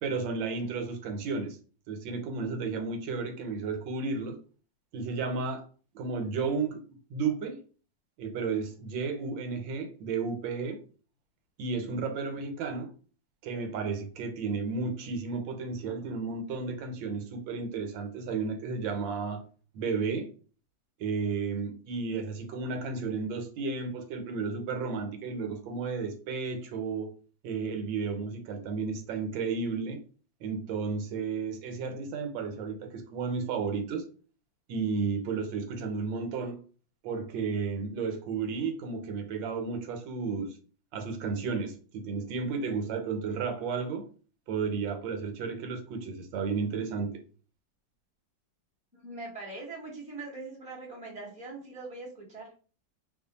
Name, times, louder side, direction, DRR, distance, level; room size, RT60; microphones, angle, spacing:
voice 1, 0.0-1.6 1.9-4.4 4.9-5.6 5.9-6.8 7.1-7.6 8.2-10.8 11.6-12.9 13.4-19.4 19.7-20.3 21.0-27.1 27.4-30.0 30.4-34.0 34.7-36.6 37.0-40.5 40.9-44.0 44.5-47.1, right 4 dB, 85° right, 1.4 m, -33 dB
voice 2, 48.9-52.5, right 3 dB, 5° right, 1.0 m, -42 dB
3.0 x 2.3 x 3.9 m
omnidirectional pair, 2.0 m